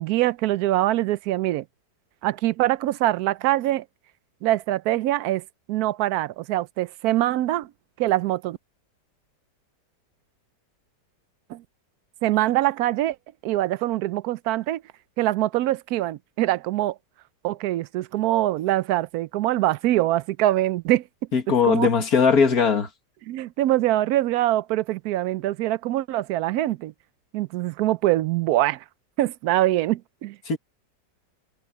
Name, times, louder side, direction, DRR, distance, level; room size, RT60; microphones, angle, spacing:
voice 1, 0.0-1.6 2.2-3.8 4.4-7.7 8.0-8.6 11.5-11.6 12.2-13.2 13.4-14.8 15.2-17.0 17.4-21.1 21.6-21.9 23.3-26.9 27.3-28.8 29.2-30.4, right 15 dB, 70° right, 0.9 m, -23 dB
voice 2, 21.3-22.9 30.5-30.6, left 6 dB, 55° left, 2.4 m, -19 dB
omnidirectional pair, 1.9 m